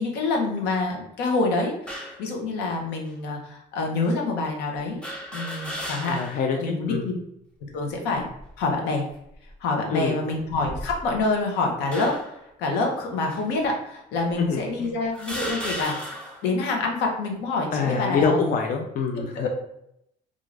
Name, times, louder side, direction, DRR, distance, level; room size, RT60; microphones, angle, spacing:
voice 1, 0.0-5.0 5.3-7.1 7.7-8.3 8.6-9.0 9.6-12.1 12.6-16.2 16.4-18.4 19.3-19.5, left 3 dB, 90° left, 1 dB, 0.7 m, -26 dB
sound 1, 1.9-2.3 3.1-3.2 5.0-6.5 6.9-7.0 8.1-8.6 9.3-9.5 10.5-11.3 11.9-12.4 13.3-13.4 14.3-14.4 15.1-16.5, equal, 5° left, 0.7 m, -35 dB
voice 2, 6.1-7.1 9.9-10.2 14.4-14.6 17.7-19.5, left 5 dB, 50° left, 3 dB, 0.5 m, -25 dB
2.5 x 2.4 x 3.2 m, 0.78 s
cardioid pair, 110°, 17 cm